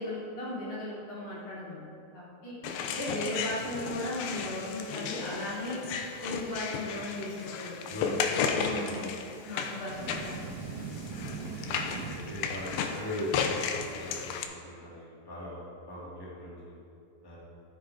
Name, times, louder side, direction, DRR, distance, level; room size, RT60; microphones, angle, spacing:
voice 1, 0.0-1.8 2.1-2.5 2.9-5.8 6.2-9.1 9.4-10.2, left 1 dB, 45° left, -8 dB, 3.7 m, -36 dB
sound 1, 2.6-14.4, left 6 dB, 85° left, 2.5 m, -34 dB
voice 2, 7.9-9.0 11.5-11.6 12.1-16.7 17.2-17.4, left 2 dB, 10° left, -8 dB, 1.5 m, -39 dB
sound 2, 9.8-13.0, right 4 dB, 85° right, 2.9 m, -40 dB
13.0 x 7.8 x 4.7 m, 2.5 s
omnidirectional pair, 4.3 m